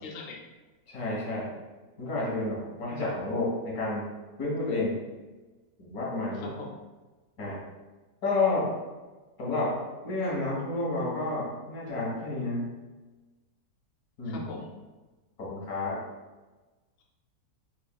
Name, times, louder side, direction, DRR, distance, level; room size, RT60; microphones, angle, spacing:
voice 1, 0.0-0.4 6.3-6.8 14.3-14.7, left 3 dB, 60° left, 0 dB, 0.6 m, -41 dB
voice 2, 0.9-1.5 2.0-4.1 4.4-5.0 5.9-6.5 7.4-7.6 8.2-8.7 9.4-9.8 10.0-12.7 14.2-14.4 15.4-16.0, left 2 dB, 85° left, -4 dB, 1.8 m, -30 dB
4.2 x 3.1 x 2.2 m, 1.2 s
omnidirectional pair, 1.6 m